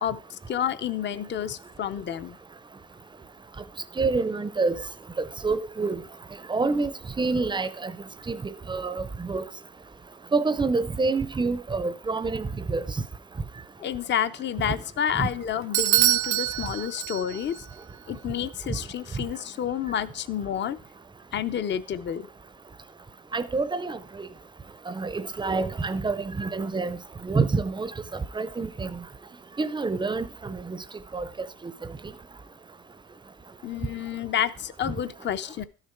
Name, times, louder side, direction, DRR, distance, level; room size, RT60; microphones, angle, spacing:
voice 1, 0.0-2.4 13.8-17.6 18.1-20.8 21.3-22.3 33.6-35.6, left 9 dB, 35° left, 0.5 m, -29 dB
voice 2, 4.0-4.8 5.4-6.0 6.5-7.9 8.3-9.4 10.3-12.8 15.1-15.3 23.3-24.3 24.9-27.0 27.2-29.0 29.6-30.8 31.1-31.3, right 3 dB, 15° right, 0.5 m, -27 dB
Bell / Doorbell, 15.7-17.6, right 17 dB, 65° right, 0.5 m, -24 dB
12.5 x 6.6 x 4.5 m
cardioid pair, 145°, 33 cm